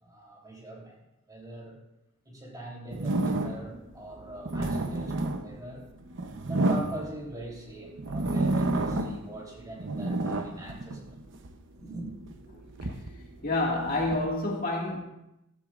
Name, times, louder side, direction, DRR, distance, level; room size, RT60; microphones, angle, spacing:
voice 1, 0.0-1.0 1.3-1.8 2.3-5.9 6.4-11.2 11.7-12.1, right 2 dB, 15° right, -3 dB, 3.4 m, -42 dB
sound 1, 2.9-3.8 4.3-7.5 8.0-9.3 9.6-11.6 12.1-14.2, right 2 dB, 60° right, 0.9 m, -30 dB
voice 2, 13.4-15.0, left 2 dB, 45° left, -2 dB, 2.1 m, -28 dB
15.0 x 14.5 x 2.5 m, 0.88 s
head